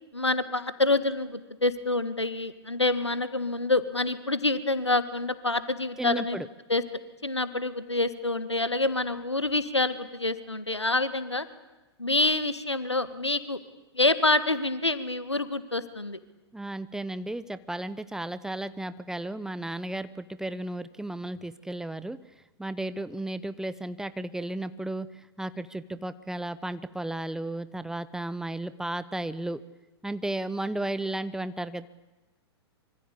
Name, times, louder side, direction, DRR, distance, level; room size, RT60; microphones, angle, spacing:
voice 1, 0.1-6.4 6.7-6.8 7.2-11.5 12.0-13.6 13.9-16.2, left 2 dB, 90° left, 13 dB, 1.8 m, -27 dB
voice 2, 6.0-6.5 16.5-22.2 22.6-25.1 25.4-29.6 30.0-31.9, right 1 dB, 5° right, 14 dB, 0.9 m, -34 dB
25.5 x 25.0 x 8.6 m, 1.1 s
figure-of-eight pair, 105°, 14 cm